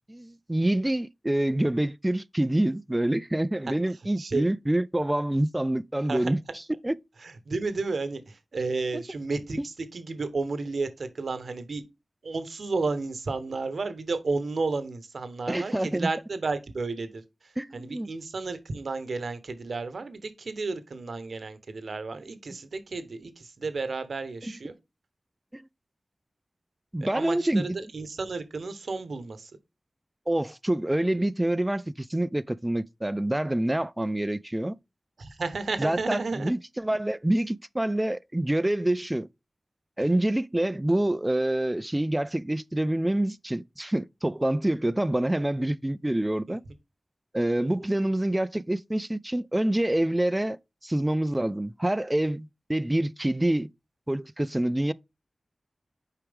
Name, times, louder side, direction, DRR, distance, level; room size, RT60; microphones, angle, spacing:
voice 1, 0.0-6.4 6.8-7.0 8.9-9.0 9.6-9.7 15.5-16.1 17.6-18.1 24.4-24.5 25.5-25.7 26.9-27.8 30.3-34.8 35.8-39.3 40.0-46.6 47.3-53.7 54.1-54.9, right 1 dB, 20° right, 0.4 m, -26 dB
voice 2, 7.2-11.8 12.2-17.2 17.7-24.7 27.1-29.5 35.2-36.5 47.6-47.7, right 3 dB, 85° right, 1.0 m, -32 dB
6.8 x 4.6 x 3.5 m
cardioid pair, 40°, 0 cm